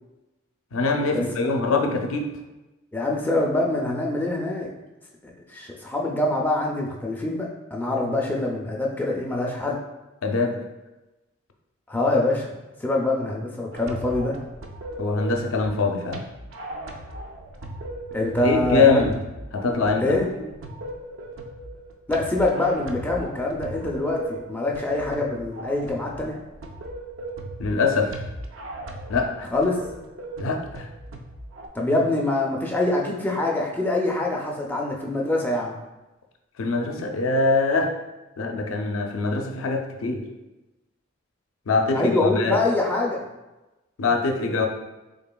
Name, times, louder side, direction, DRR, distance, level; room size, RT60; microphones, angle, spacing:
voice 1, 0.7-2.2 10.2-10.6 15.0-16.2 18.4-19.2 19.5-20.2 27.6-28.2 29.1-29.5 30.4-30.9 36.6-37.9 38.4-40.2 41.7-42.6 44.0-44.7, left 4 dB, 85° left, 3 dB, 0.5 m, -23 dB
voice 2, 2.9-4.7 5.5-9.8 11.9-12.5 12.8-14.4 18.1-19.0 20.0-20.3 22.1-26.4 29.5-29.8 31.7-35.7 41.9-43.2, left 2 dB, 10° left, -1 dB, 0.3 m, -24 dB
sound 1, 13.7-31.7, right 1 dB, 70° right, 0.4 m, -38 dB
3.7 x 3.6 x 2.2 m, 1.0 s
head